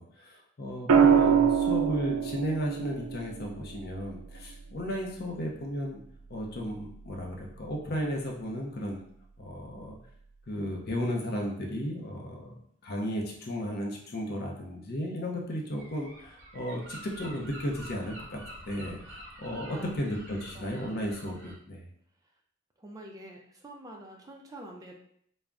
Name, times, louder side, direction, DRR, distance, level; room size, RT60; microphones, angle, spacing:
voice 1, 0.0-6.0 6.3-9.0 9.4-10.0 10.5-18.4 18.7-21.9, equal, 50° left, 1 dB, 0.5 m, -34 dB
voice 2, 0.8-1.5 19.7-20.0 20.3-20.9 22.8-24.9, right 1 dB, 15° right, 0 dB, 0.4 m, -46 dB
sound 1, 0.9-5.0 6.7-7.1, right 7 dB, 90° right, 0.3 m, -25 dB
Gull seagull, 15.8-21.5, right 1 dB, 60° right, 0.8 m, -47 dB
2.4 x 2.0 x 3.4 m, 0.67 s
head